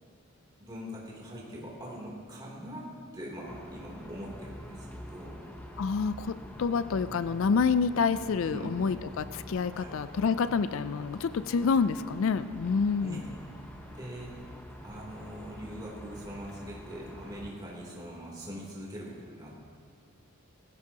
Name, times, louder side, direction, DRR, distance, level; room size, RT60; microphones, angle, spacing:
voice 1, 0.6-5.4 8.5-8.8 9.7-10.0 13.0-14.5 14.8-19.5, equal, 20° right, -4 dB, 3.1 m, -42 dB
sound 1, 3.5-17.5, equal, 5° left, 0.9 m, -46 dB
voice 2, 5.8-13.2, left 5 dB, 70° left, 13 dB, 0.4 m, -28 dB
19.0 x 16.0 x 2.9 m, 2.1 s
head